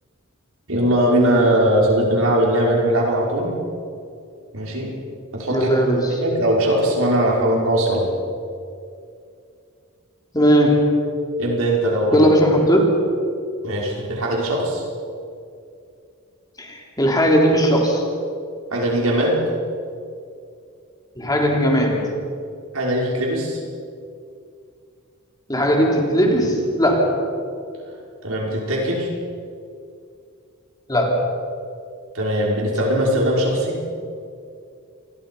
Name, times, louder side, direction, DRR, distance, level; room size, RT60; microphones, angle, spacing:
voice 1, 0.7-3.6 4.5-4.9 5.3-5.7 6.2-8.1 11.4-12.3 13.6-14.8 18.7-19.4 22.7-23.6 28.2-29.1 32.1-33.8, right 1 dB, 75° right, -2 dB, 5.8 m, -20 dB
voice 2, 5.5-6.2 10.3-10.9 12.1-12.8 16.6-18.0 21.2-22.3 25.5-27.2 30.9-31.3, equal, 20° left, 0 dB, 3.9 m, -18 dB
28.0 x 22.0 x 5.7 m, 2.4 s
head